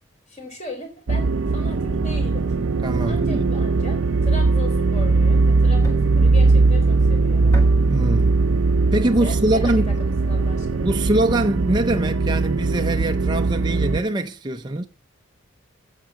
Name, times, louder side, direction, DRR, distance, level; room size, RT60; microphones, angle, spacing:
voice 1, 0.3-2.5 3.0-7.5 9.2-10.9, left 2 dB, 35° left, 3.7 m, -37 dB
sound 1, 1.1-14.0, right 3 dB, 70° right, 0.6 m, -19 dB
voice 2, 2.8-3.5 7.9-8.4 8.9-9.9 10.8-14.9, right 1 dB, 20° right, 0.5 m, -23 dB
Thump thud, 2.9-3.3 4.3-4.7 5.8-6.2 7.5-7.9, equal, 15° left, 1.9 m, -32 dB
9.5 x 7.4 x 9.2 m
head